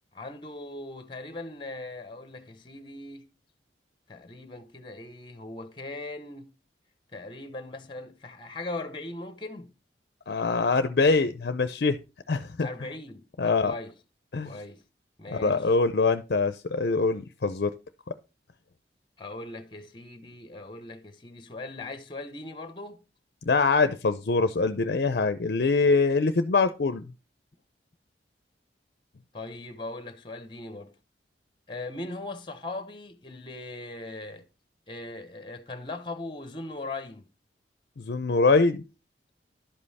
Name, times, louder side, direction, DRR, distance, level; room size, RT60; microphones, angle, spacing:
voice 1, 0.1-3.3 4.1-6.5 7.1-9.7 12.6-13.9 14.4-14.8 15.2-15.7 19.2-23.0 29.3-30.9 31.7-34.4 34.9-37.3, left 2 dB, 30° left, 0.9 m, -39 dB
voice 2, 10.3-12.0 12.3-12.7 13.4-13.7 14.3-14.5 15.3-17.7 23.5-27.0 38.0-38.8, left 4 dB, 60° left, 0.5 m, -24 dB
11.5 x 5.4 x 4.1 m
head